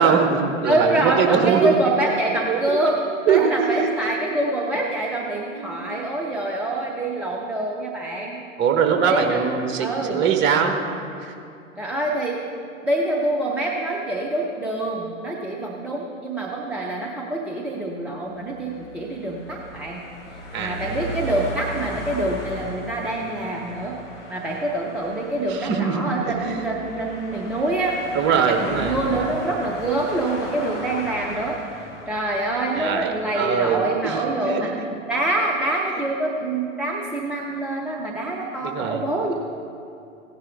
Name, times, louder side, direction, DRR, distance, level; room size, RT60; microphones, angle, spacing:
voice 1, 0.0-1.7 2.5-2.8 3.3-4.2 5.5-6.0 8.6-10.8 11.2-11.3 20.5-21.2 25.5-26.7 28.1-29.0 30.7-30.8 32.7-34.6 38.6-39.0, right 6 dB, 30° right, 5 dB, 1.1 m, -22 dB
voice 2, 0.6-8.4 9.0-9.4 9.8-10.2 11.8-12.4 12.8-20.0 20.3-24.0 24.3-28.0 28.3-31.6 32.1-34.7 35.1-39.3, right 2 dB, 5° right, -2 dB, 0.4 m, -25 dB
sound 1, 18.4-33.8, equal, 60° left, 3.0 m, -37 dB
15.5 x 11.0 x 3.5 m, 2.6 s
figure-of-eight pair, 100°, 39 cm